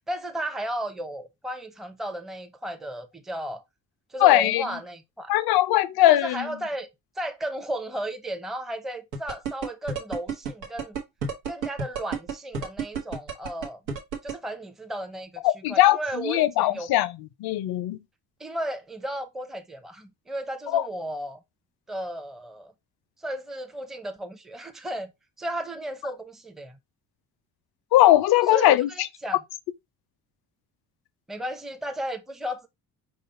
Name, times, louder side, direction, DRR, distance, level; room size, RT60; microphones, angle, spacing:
voice 1, 0.1-3.6 4.1-5.3 6.2-6.9 7.2-11.0 11.5-13.8 14.2-16.9 18.4-21.4 21.9-22.7 23.2-25.1 25.4-26.8 28.5-29.4 31.3-32.7, right 1 dB, ahead, 0.6 m, -34 dB
voice 2, 4.2-4.6 5.3-6.5 15.4-17.1 17.4-18.0 20.7-20.8 27.9-28.9, left 15 dB, 50° left, 0.6 m, -20 dB
sound 1, 9.1-14.3, right 5 dB, 85° right, 1.0 m, -30 dB
5.2 x 2.4 x 4.0 m
figure-of-eight pair, 45°, 49 cm